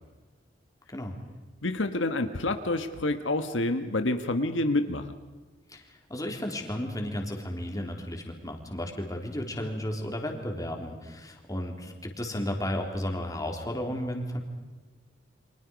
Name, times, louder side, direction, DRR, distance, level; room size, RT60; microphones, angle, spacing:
voice 1, 1.6-5.1, left 2 dB, 85° left, 8 dB, 1.4 m, -28 dB
voice 2, 5.7-14.4, left 1 dB, 20° left, 3 dB, 3.6 m, -33 dB
29.5 x 25.0 x 5.3 m, 1.3 s
head